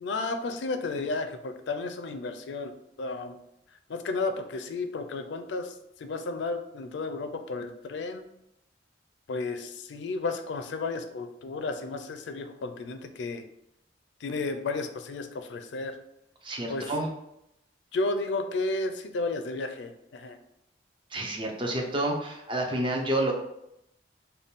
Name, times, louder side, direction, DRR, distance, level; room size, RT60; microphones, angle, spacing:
voice 1, 0.0-2.7 3.0-3.4 3.9-8.2 9.3-13.4 14.2-15.9 16.7-16.9 17.9-20.4, left 3 dB, 80° left, 8 dB, 0.4 m, -33 dB
voice 2, 16.4-17.1 21.1-23.3, right 1 dB, 30° right, 1 dB, 0.5 m, -29 dB
3.5 x 2.2 x 4.0 m, 0.82 s
head